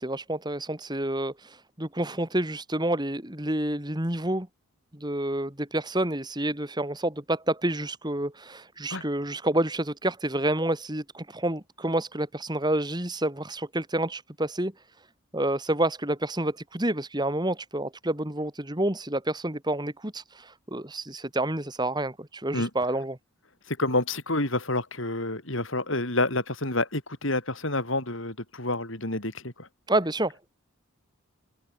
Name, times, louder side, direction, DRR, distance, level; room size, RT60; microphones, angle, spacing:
voice 1, 0.0-4.5 4.9-14.7 15.0-15.1 15.3-23.2 29.9-30.4, right 1 dB, 20° right, 2.6 m, -29 dB
voice 2, 23.7-29.7, left 2 dB, 60° left, 5.1 m, -28 dB
open air
head